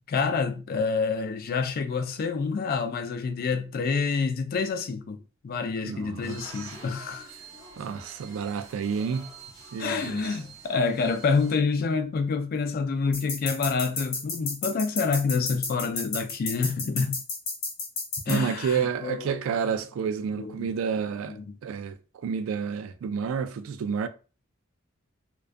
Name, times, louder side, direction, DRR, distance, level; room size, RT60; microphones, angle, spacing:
voice 1, 0.1-5.2 5.4-7.3 9.8-17.2 18.3-19.4 20.3-20.7 21.3-21.6, left 4 dB, 50° left, 0.3 m, -27 dB
voice 2, 5.8-6.7 7.8-9.3 9.7-10.2 18.3-24.1, right 6 dB, 85° right, 0.3 m, -30 dB
sound 1, 6.2-11.6, right 4 dB, 15° right, 0.6 m, -47 dB
sound 2, 13.1-18.4, left 3 dB, 80° left, 1.0 m, -32 dB
2.3 x 2.2 x 2.4 m
head